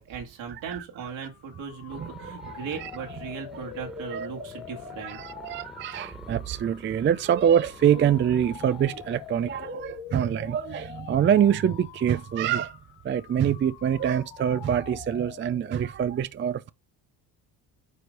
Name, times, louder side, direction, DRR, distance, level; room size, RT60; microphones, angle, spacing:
voice 1, 0.0-5.2, right 6 dB, 70° right, 2.4 m, -38 dB
sound 1, 1.3-15.9, left 12 dB, 65° left, 0.9 m, -45 dB
sound 2, 1.9-9.7, equal, ahead, 1.5 m, -49 dB
voice 2, 1.9-2.9 4.0-4.3 5.0-12.8 13.0-16.7, right 9 dB, 25° right, 0.4 m, -25 dB
9.4 x 3.2 x 5.3 m
supercardioid pair, 70°, 47 cm